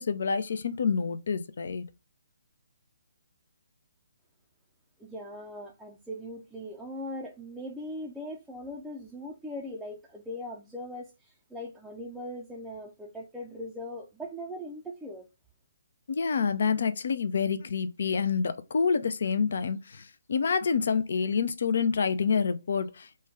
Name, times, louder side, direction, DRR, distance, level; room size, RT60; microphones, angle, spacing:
voice 1, 0.0-1.8 16.1-23.1, left 5 dB, 60° left, 0.4 m, -27 dB
voice 2, 5.0-15.3, left 1 dB, 5° right, 0.4 m, -40 dB
3.1 x 2.2 x 3.5 m
figure-of-eight pair, 135°, 0 cm